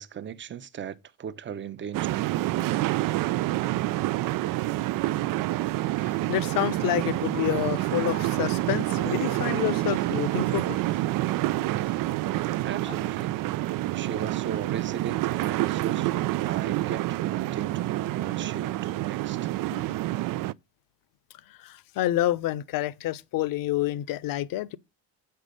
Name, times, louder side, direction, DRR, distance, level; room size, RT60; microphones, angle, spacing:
voice 1, 0.0-2.2 12.6-13.4 13.9-19.5, right 8 dB, 30° right, 0.8 m, -37 dB
sound 1, 1.9-20.5, right 17 dB, 55° right, 0.5 m, -28 dB
voice 2, 5.9-11.0 11.4-11.5 12.4-12.6 19.7-19.8 21.5-24.8, left 14 dB, 55° left, 0.9 m, -29 dB
sound 2, 7.3-11.8, left 10 dB, 85° left, 1.6 m, -48 dB
8.2 x 5.7 x 6.5 m
supercardioid pair, 100°, 40 cm